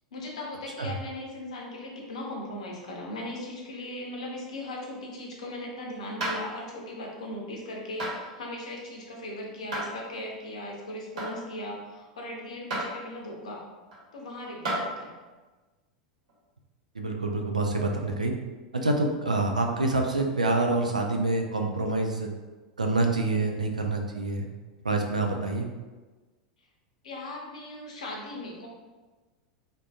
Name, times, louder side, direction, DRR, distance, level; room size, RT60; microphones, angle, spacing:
voice 1, 0.1-13.6 14.1-15.2 27.0-28.7, left 1 dB, 65° left, -1 dB, 0.7 m, -38 dB
sound 1, 6.2-6.5 8.0-8.1 9.7-9.9 11.2-11.4 12.7-12.9 13.9-14.0 14.6-14.8 16.3-16.4, right 1 dB, 65° right, 1.1 m, -30 dB
voice 2, 16.9-18.3 18.7-22.3 22.8-24.5 24.8-25.7, right 2 dB, 85° right, 3 dB, 0.4 m, -26 dB
3.7 x 2.5 x 2.4 m, 1.3 s
figure-of-eight pair, 85°, 4 cm